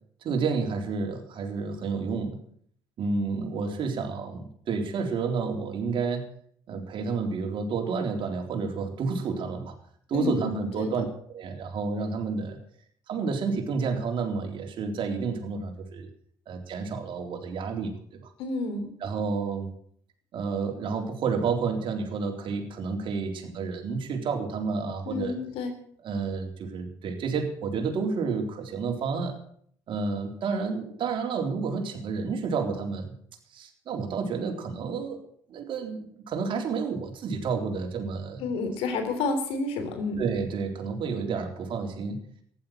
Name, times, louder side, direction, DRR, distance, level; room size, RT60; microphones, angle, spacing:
voice 1, 0.2-2.4 3.0-6.3 6.7-9.7 10.1-11.1 11.3-12.6 13.1-16.1 16.5-18.3 19.0-19.7 20.3-25.4 26.0-29.4 29.9-33.1 33.5-35.2 35.5-38.4 40.2-42.2, right 5 dB, 55° right, 3 dB, 4.0 m, -30 dB
voice 2, 10.1-11.0 18.4-18.9 25.1-25.7 38.4-40.2, left 3 dB, 70° left, 8 dB, 3.4 m, -30 dB
15.0 x 11.0 x 7.6 m, 0.62 s
hypercardioid pair, 60°, 10 cm